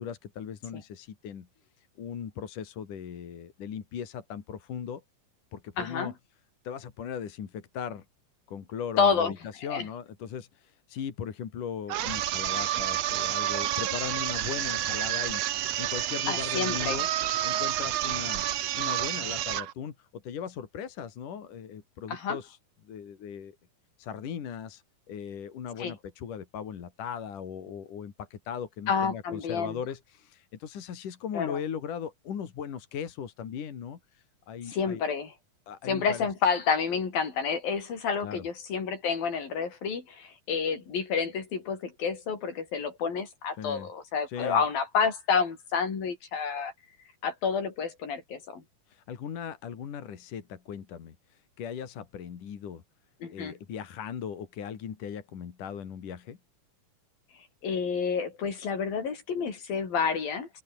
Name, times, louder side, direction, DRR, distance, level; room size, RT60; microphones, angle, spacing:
voice 1, 0.0-1.5 2.0-5.0 5.5-6.1 6.6-8.1 8.5-17.1 17.4-18.5 18.8-22.6 22.8-23.6 24.0-35.0 35.7-36.3 38.2-38.5 43.6-43.9 44.3-44.6 48.9-52.8 53.3-56.4, left 8 dB, 65° left, 4.1 m, -38 dB
voice 2, 5.8-6.1 9.0-9.3 9.6-9.9 16.3-17.0 22.1-22.4 25.8-25.9 28.9-29.8 31.3-31.6 34.7-35.3 35.9-46.7 47.2-48.6 53.2-53.5 57.6-60.5, left 6 dB, 80° left, 6.3 m, -29 dB
sound 1, 11.9-19.7, right 13 dB, 65° right, 1.8 m, -29 dB
open air
omnidirectional pair, 4.0 m